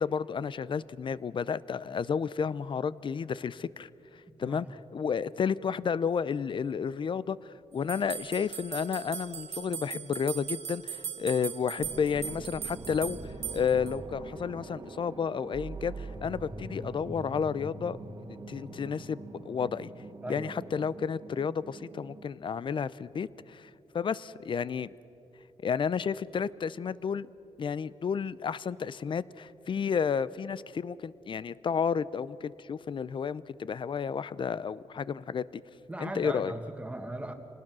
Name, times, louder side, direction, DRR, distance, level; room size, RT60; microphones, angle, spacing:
voice 1, 0.0-3.9 4.4-18.0 18.3-19.9 20.3-24.9 25.6-27.3 27.6-35.6 36.0-36.5, left 6 dB, 45° left, 19 dB, 0.5 m, -32 dB
voice 2, 4.3-4.6 20.2-20.7 35.9-37.3, right 1 dB, 10° right, 6 dB, 1.8 m, -38 dB
sound 1, 7.9-13.9, right 9 dB, 75° right, 0.8 m, -39 dB
sound 2, 11.8-22.2, right 2 dB, 40° right, 1.7 m, -43 dB
27.0 x 19.5 x 6.2 m, 3.0 s
cardioid pair, 105°, 12 cm